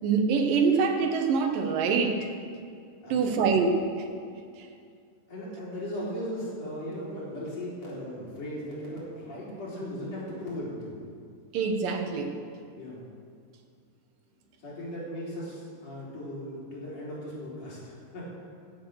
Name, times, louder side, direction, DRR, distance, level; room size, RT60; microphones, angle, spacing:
voice 1, 0.0-2.3 3.1-4.0 11.5-12.3, right 5 dB, 90° right, 5 dB, 2.9 m, -25 dB
voice 2, 3.0-3.5 5.3-11.0 12.7-13.1 14.6-18.3, equal, 50° left, -7 dB, 5.0 m, -37 dB
16.5 x 8.5 x 6.5 m, 2.3 s
omnidirectional pair, 3.8 m